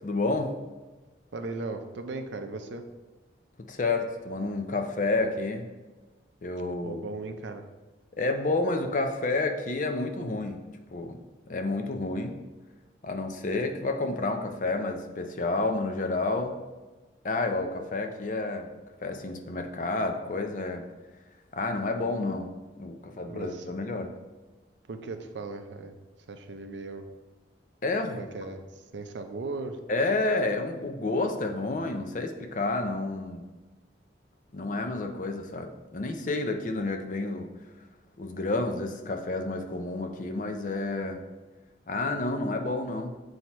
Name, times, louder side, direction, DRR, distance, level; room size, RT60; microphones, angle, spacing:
voice 1, 0.0-0.6 3.6-5.7 6.4-7.0 8.1-12.4 13.0-16.6 17.2-18.7 19.0-20.9 21.5-24.2 27.8-28.3 29.9-33.5 34.5-37.5 38.2-41.2 41.9-43.2, left 2 dB, 45° left, 5 dB, 0.5 m, -30 dB
voice 2, 1.3-2.8 6.8-7.6 23.0-23.6 24.9-26.0 26.3-27.1 28.1-28.6 28.9-29.8, right 3 dB, 85° right, 7 dB, 0.6 m, -37 dB
7.7 x 2.8 x 4.3 m, 1.2 s
head